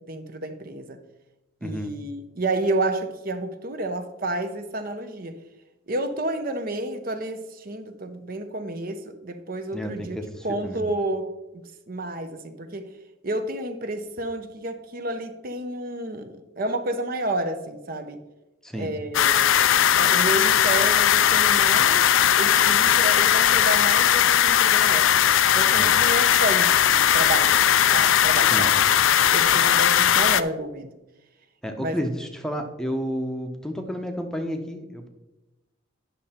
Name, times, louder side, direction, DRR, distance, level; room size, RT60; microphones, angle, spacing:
voice 1, 0.1-1.0 1.6-5.4 5.9-10.2 10.4-11.3 11.9-12.9 13.2-18.2 18.8-19.5 20.0-25.1 25.5-27.5 27.9-28.8 29.3-30.9 31.8-32.1, right 1 dB, 45° right, 8 dB, 0.7 m, -30 dB
voice 2, 1.6-1.9 9.7-10.8 18.6-18.9 25.8-25.9 28.5-28.7 31.6-35.1, equal, 5° left, 4 dB, 0.8 m, -31 dB
sound 1, 19.1-30.4, left 10 dB, 75° left, 0.4 m, -19 dB
10.0 x 6.5 x 4.3 m, 1.0 s
head